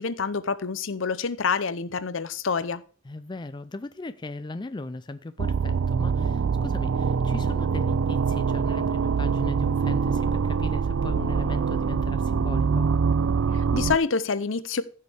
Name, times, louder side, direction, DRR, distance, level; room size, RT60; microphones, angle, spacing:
voice 1, 0.0-2.8 13.5-14.8, left 5 dB, 70° left, 0.7 m, -27 dB
voice 2, 3.0-12.9, left 2 dB, 20° left, 0.4 m, -38 dB
sound 1, 5.4-14.0, right 5 dB, 70° right, 0.4 m, -24 dB
15.5 x 6.6 x 3.4 m
head